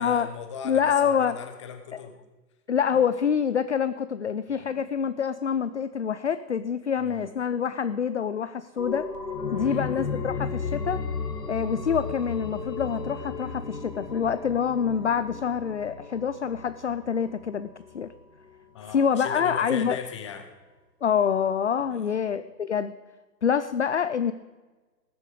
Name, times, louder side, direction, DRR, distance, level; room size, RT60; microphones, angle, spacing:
voice 1, 0.0-0.9 1.2-2.1 4.5-4.8 7.0-7.3 9.5-9.9 18.7-20.5 21.9-22.1, left 7 dB, 20° left, 7 dB, 0.9 m, -39 dB
voice 2, 0.6-1.4 1.9-2.0 2.7-9.1 9.5-11.1 11.5-18.1 18.9-20.0 21.0-22.9 23.4-24.3, left 7 dB, 45° left, 13 dB, 0.5 m, -26 dB
sound 1, 8.8-18.1 18.5-18.6, left 4 dB, 75° left, 2.3 m, -35 dB
19.0 x 7.6 x 4.9 m, 1.3 s
figure-of-eight pair, 145°, 49 cm